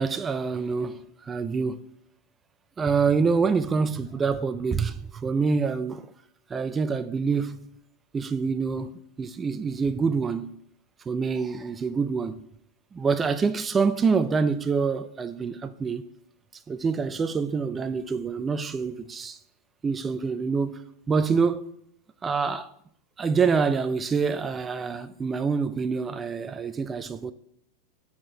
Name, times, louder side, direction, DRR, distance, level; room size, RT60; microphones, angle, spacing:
voice 1, 0.0-1.8 2.8-6.1 6.5-7.7 8.1-10.6 11.1-12.4 12.9-16.1 16.7-19.4 19.8-20.8 21.1-21.7 22.2-22.7 23.2-27.3, right 5 dB, 20° right, 0.4 m, -26 dB
6.0 x 4.3 x 6.4 m
hypercardioid pair, 125°, 0 cm